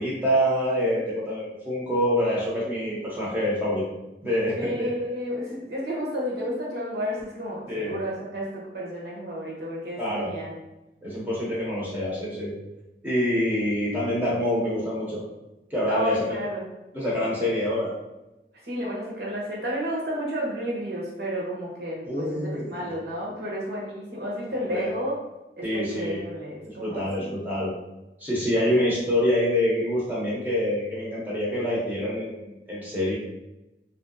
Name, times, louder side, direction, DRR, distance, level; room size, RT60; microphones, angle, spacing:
voice 1, 0.0-3.8 4.2-4.9 7.7-8.0 10.0-10.3 11.0-12.5 13.0-15.2 15.7-16.2 16.9-17.9 22.1-22.8 24.7-24.9 25.6-26.2 26.7-27.7 28.2-33.1, equal, 10° right, -7 dB, 0.7 m, -26 dB
voice 2, 4.6-10.6 15.9-16.6 18.6-25.1 25.6-27.4 28.7-28.9, equal, 65° right, -4 dB, 1.0 m, -31 dB
2.9 x 2.6 x 2.6 m, 0.96 s
head